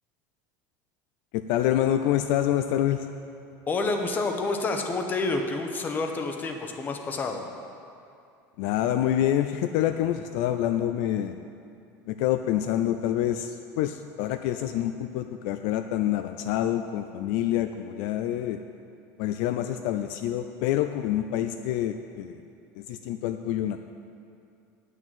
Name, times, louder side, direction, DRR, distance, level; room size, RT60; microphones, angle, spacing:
voice 1, 1.3-3.1 8.6-11.4 12.1-18.6 19.2-22.4 22.8-23.9, left 12 dB, 70° left, 8 dB, 0.4 m, -27 dB
voice 2, 3.7-7.4, left 3 dB, 25° left, 4 dB, 0.9 m, -28 dB
8.9 x 6.3 x 7.7 m, 2.5 s
cardioid pair, 150°, 8 cm